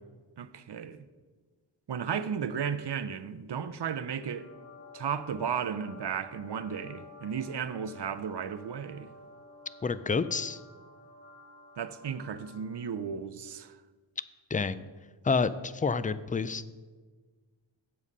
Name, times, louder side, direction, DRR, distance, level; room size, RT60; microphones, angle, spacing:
voice 1, 0.4-1.0 1.9-4.5 4.9-9.1 11.8-13.8, right 7 dB, 60° right, 0.6 m, -34 dB
sound 1, 4.1-13.0, left 2 dB, 50° left, 2.6 m, -52 dB
voice 2, 9.8-10.6 14.5-14.8 15.2-16.6, left 4 dB, 20° left, 0.3 m, -28 dB
8.3 x 7.4 x 5.3 m
wide cardioid pair, 75°, 46 cm